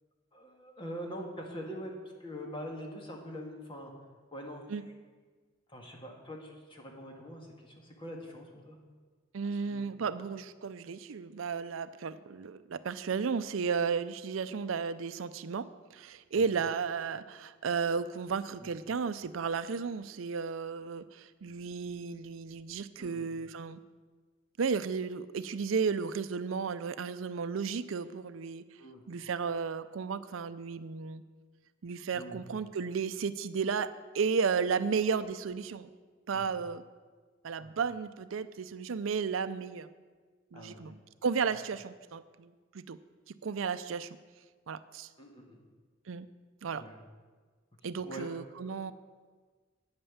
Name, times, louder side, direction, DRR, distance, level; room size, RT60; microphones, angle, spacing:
voice 1, 0.3-1.9 2.2-3.9 4.3-4.9 5.7-8.8 9.6-9.9 16.3-16.4 18.6-18.7 23.0-23.3 28.8-29.0 32.1-32.4 36.3-36.5 37.6-37.8 40.5-40.8 45.2-45.6 46.7-46.9 48.0-48.9, equal, 25° left, 0 dB, 1.9 m, -44 dB
voice 2, 9.3-23.8 24.6-28.6 29.1-31.2 31.8-35.9 36.3-36.8 37.4-39.9 40.5-43.0 43.4-44.1 44.7-45.1 46.1-46.3 46.6-46.8 47.8-48.9, right 5 dB, 80° right, 13 dB, 0.5 m, -33 dB
9.7 x 8.8 x 7.2 m, 1.4 s
head